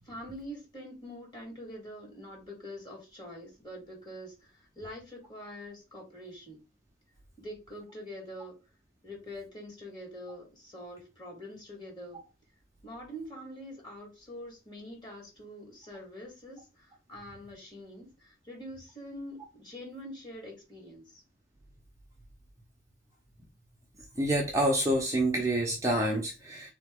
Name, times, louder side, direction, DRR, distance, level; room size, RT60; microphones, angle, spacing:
voice 1, 0.0-6.6 7.4-8.6 9.0-12.2 12.8-21.2, equal, 20° left, -1 dB, 1.8 m, -45 dB
voice 2, 24.1-26.7, right 1 dB, 15° right, -1 dB, 0.7 m, -27 dB
3.8 x 2.9 x 3.7 m, 0.28 s
head